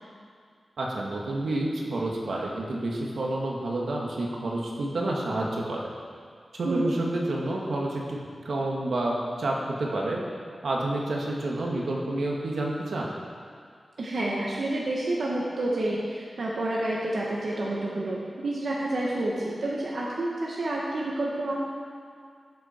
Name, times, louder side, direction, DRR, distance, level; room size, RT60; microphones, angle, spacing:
voice 1, 0.8-5.8 6.5-8.2 8.4-10.2 10.6-13.1, right 2 dB, 85° right, -2 dB, 2.0 m, -29 dB
voice 2, 14.0-21.6, right 1 dB, 70° right, -4 dB, 1.6 m, -29 dB
17.5 x 8.1 x 4.6 m, 2.2 s
wide cardioid pair, 105°, 0 cm